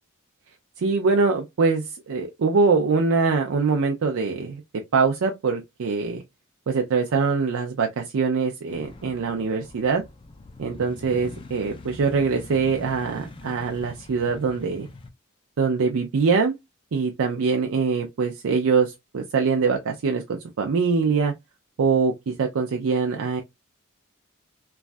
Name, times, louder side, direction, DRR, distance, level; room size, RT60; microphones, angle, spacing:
voice 1, 0.8-4.6 4.9-6.2 6.7-10.0 10.6-14.9 15.6-16.5 16.9-21.3 21.8-23.4, right 4 dB, 70° right, 0.4 m, -23 dB
sound 1, 8.7-15.1, left 2 dB, 25° left, 0.4 m, -43 dB
3.1 x 2.3 x 2.4 m
head